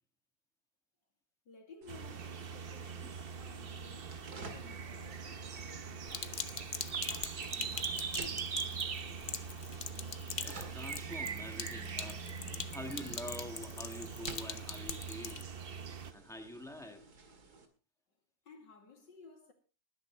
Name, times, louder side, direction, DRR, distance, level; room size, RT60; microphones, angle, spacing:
voice 1, 1.4-6.6 7.0-8.5 18.4-19.5, left 4 dB, 80° left, 3.2 m, -57 dB
sound 1, 1.8-17.7, right 3 dB, 60° right, 2.5 m, -53 dB
sound 2, 1.9-16.1, right 6 dB, 45° right, 0.8 m, -42 dB
Sink (filling or washing), 6.1-15.4, left 6 dB, 40° left, 0.7 m, -43 dB
voice 2, 10.4-15.5 16.1-17.1, left 1 dB, ahead, 1.4 m, -46 dB
20.0 x 10.5 x 3.2 m
omnidirectional pair, 1.9 m